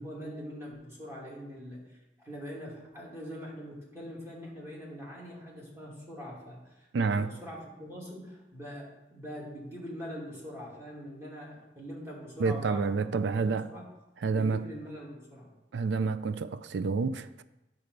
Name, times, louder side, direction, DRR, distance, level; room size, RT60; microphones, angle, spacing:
voice 1, 0.0-13.8 14.3-15.5, equal, 15° right, 2.4 m, -43 dB
voice 2, 6.9-7.3 12.4-13.7 14.2-14.6 15.7-17.4, right 4 dB, 70° right, 0.4 m, -29 dB
9.0 x 4.1 x 6.6 m
head